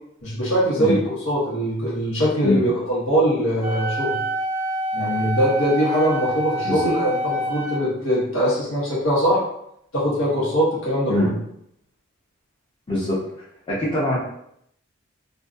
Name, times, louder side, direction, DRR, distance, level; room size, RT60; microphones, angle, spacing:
voice 1, 0.2-1.0 1.2-4.2 4.9-9.4 9.9-11.3, equal, 80° left, -7 dB, 1.1 m, -22 dB
Wind instrument woodwind instrument, 3.6-7.8, right 1 dB, 40° right, 0.4 m, -27 dB
voice 2, 12.9-13.2 13.7-14.2, left 1 dB, 25° left, -7 dB, 0.5 m, -22 dB
2.5 x 2.3 x 2.4 m, 0.74 s
head